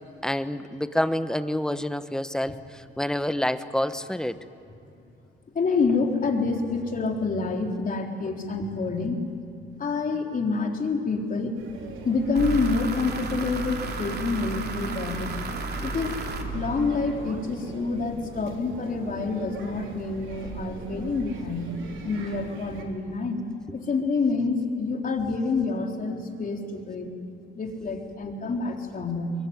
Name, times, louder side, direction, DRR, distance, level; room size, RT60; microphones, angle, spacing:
voice 1, 0.2-4.4, left 1 dB, 5° left, 11 dB, 1.2 m, -28 dB
voice 2, 5.5-9.2 9.7-11.6 12.0-15.3 15.8-16.1 16.5-21.7 22.0-23.4 23.7-27.1 27.6-29.3, left 4 dB, 45° left, 2 dB, 3.8 m, -27 dB
sound 1, 11.5-22.8, right 3 dB, 80° right, 3.5 m, -40 dB
sound 2, 12.3-17.3, right 2 dB, 55° right, 2.9 m, -33 dB
23.0 x 22.0 x 9.5 m, 2.8 s
cardioid pair, 90°, 20 cm